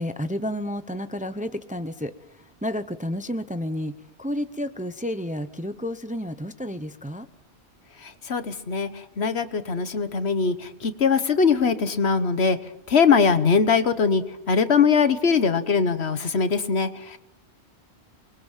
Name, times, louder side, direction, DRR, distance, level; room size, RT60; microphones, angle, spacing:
voice 1, 0.0-7.3, left 1 dB, 10° right, 11 dB, 0.7 m, -31 dB
voice 2, 8.0-8.9 9.2-12.6 12.9-17.2, left 5 dB, 70° left, 11 dB, 1.4 m, -21 dB
28.5 x 21.0 x 7.4 m, 0.91 s
omnidirectional pair, 1.2 m